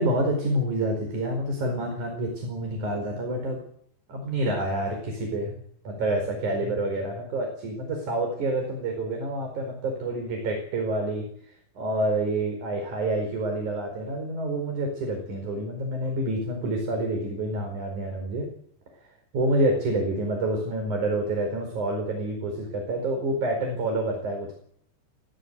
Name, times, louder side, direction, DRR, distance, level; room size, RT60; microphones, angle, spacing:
voice 1, 0.0-3.6 4.1-5.5 5.8-11.2 11.8-18.5 19.3-24.5, right 1 dB, 60° right, 3 dB, 6.3 m, -28 dB
24.0 x 16.5 x 8.3 m, 0.65 s
omnidirectional pair, 4.0 m